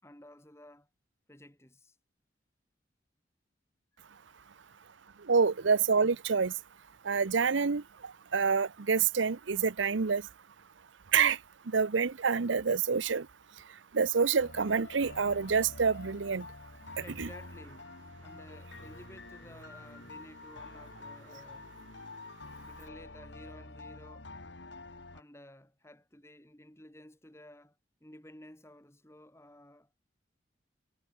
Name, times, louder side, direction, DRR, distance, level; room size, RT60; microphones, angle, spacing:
voice 1, 0.0-0.9 1.3-2.0 4.3-5.3 17.0-17.9 18.2-21.8 22.6-24.3 25.1-30.0, left 1 dB, 15° left, 3.3 m, -54 dB
voice 2, 5.3-6.5 7.0-7.8 8.3-10.2 11.1-11.4 11.7-13.3 13.9-16.4 17.2-17.3, right 5 dB, 85° right, 0.7 m, -27 dB
sound 1, 14.4-25.2, left 3 dB, 70° left, 2.3 m, -48 dB
head